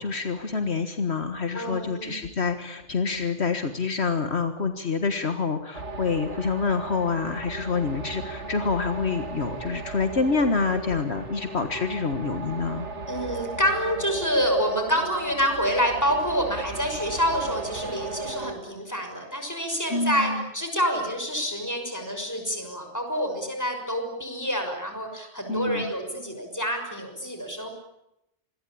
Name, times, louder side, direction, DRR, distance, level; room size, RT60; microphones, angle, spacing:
voice 1, 0.0-12.9 19.9-20.4 25.5-25.9, left 4 dB, 65° left, 7 dB, 1.9 m, -27 dB
voice 2, 1.5-2.2 13.1-27.7, equal, 15° left, 5 dB, 6.2 m, -27 dB
sound 1, 5.7-18.5, right 3 dB, 90° right, 2.3 m, -37 dB
27.0 x 21.5 x 8.6 m, 0.85 s
omnidirectional pair, 1.2 m